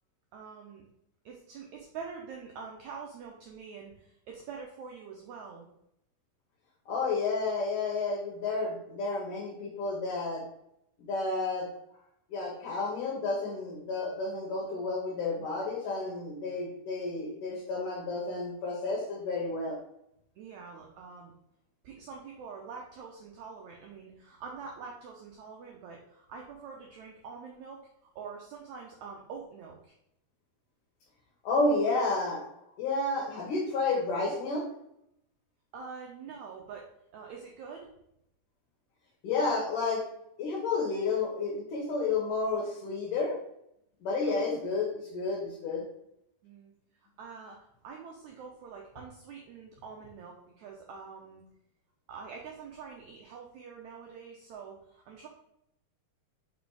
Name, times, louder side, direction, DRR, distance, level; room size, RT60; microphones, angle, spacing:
voice 1, 0.3-0.9 1.2-5.7 20.3-21.3 21.8-27.8 28.1-29.9 35.7-37.9 44.2-44.5 46.4-46.7 47.2-51.4 52.1-55.3, right 5 dB, 85° right, 0 dB, 1.6 m, -45 dB
voice 2, 6.9-10.4 11.0-11.7 12.3-19.8 31.4-32.4 32.8-34.6 39.2-40.0 40.4-43.4 44.0-45.8, left 3 dB, 70° left, -2 dB, 2.4 m, -31 dB
5.5 x 4.1 x 4.7 m, 0.79 s
omnidirectional pair, 4.2 m